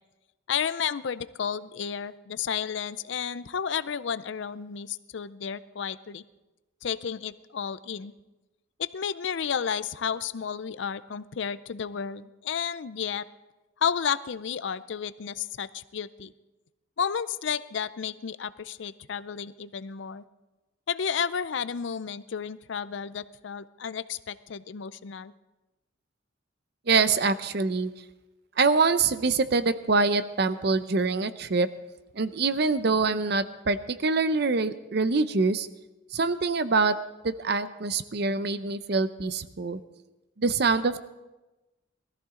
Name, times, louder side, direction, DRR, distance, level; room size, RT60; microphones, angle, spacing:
voice 1, 0.5-6.2 6.8-8.1 8.8-13.2 13.8-16.3 17.0-20.2 20.9-25.3, left 7 dB, 65° left, 16 dB, 0.5 m, -32 dB
voice 2, 26.9-27.9 28.6-31.7 32.2-35.7 36.1-36.9 37.2-39.8 40.4-41.1, right 4 dB, 55° right, 13 dB, 0.6 m, -25 dB
19.5 x 14.0 x 3.8 m, 1.1 s
head